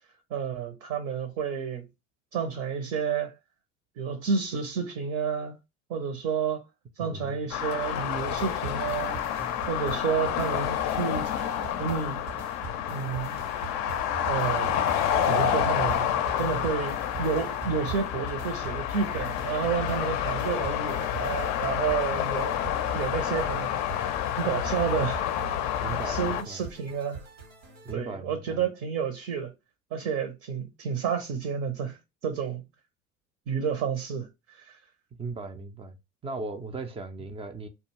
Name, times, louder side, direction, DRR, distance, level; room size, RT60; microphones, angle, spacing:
voice 1, 0.3-1.9 2.3-3.3 4.0-5.6 5.9-6.6 7.0-9.2 9.7-11.3 11.8-12.2 12.9-13.4 14.3-16.1 16.4-23.7 24.3-25.2 25.5-27.3 27.9-29.5 29.9-32.0 32.2-32.6 33.5-34.8, right 7 dB, 50° right, 0.7 m, -30 dB
voice 2, 7.0-7.4 25.7-26.6 27.8-28.6 35.2-36.0 36.2-37.7, right 3 dB, 15° right, 0.4 m, -37 dB
sound 1, 7.5-26.4, left 10 dB, 45° left, 0.5 m, -29 dB
sound 2, 8.1-27.9, right 6 dB, 80° right, 1.2 m, -43 dB
2.3 x 2.3 x 3.0 m
hypercardioid pair, 75°, 39 cm